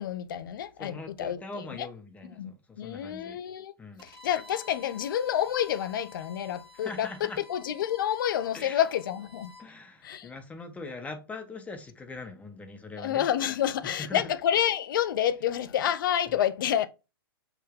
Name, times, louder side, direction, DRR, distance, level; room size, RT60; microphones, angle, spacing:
voice 1, 0.0-1.9 2.4-3.7 4.0-9.5 10.0-10.3 13.0-16.9, left 10 dB, 55° left, 0.4 m, -29 dB
voice 2, 0.8-3.4 3.8-4.0 6.7-7.4 8.5-8.8 9.6-13.3 13.8-14.3, left 3 dB, 10° left, 0.5 m, -41 dB
Bowed string instrument, 4.0-9.7, left 4 dB, 85° right, 0.9 m, -51 dB
5.7 x 2.1 x 3.3 m
figure-of-eight pair, 110°, 13 cm